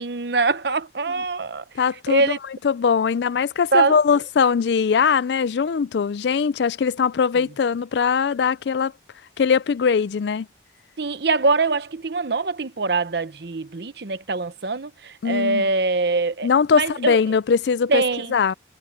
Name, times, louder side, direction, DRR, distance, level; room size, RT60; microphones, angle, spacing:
voice 1, 0.0-1.6 2.1-2.4 3.7-4.0 11.0-17.2 17.9-18.3, right 3 dB, 65° right, 0.9 m, -23 dB
voice 2, 1.8-2.2 2.6-8.9 9.4-10.5 15.2-15.7 16.4-18.0 18.3-18.5, left 6 dB, 70° left, 0.4 m, -21 dB
head